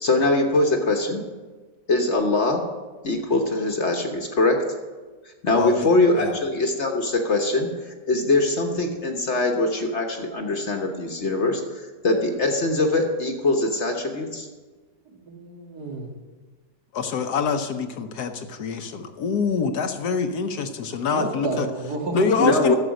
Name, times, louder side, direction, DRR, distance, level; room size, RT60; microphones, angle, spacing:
voice 1, 0.0-1.2 1.9-2.6 3.0-4.6 5.4-7.7 8.1-11.6 12.0-14.5 22.4-22.7, left 2 dB, 45° left, 3 dB, 1.3 m, -22 dB
voice 2, 15.1-16.1 21.1-22.5, right 2 dB, 65° right, 0 dB, 2.3 m, -30 dB
voice 3, 16.9-21.7 22.1-22.7, left 5 dB, 70° left, 7 dB, 1.3 m, -25 dB
12.0 x 7.3 x 6.3 m, 1.3 s
omnidirectional pair, 1.9 m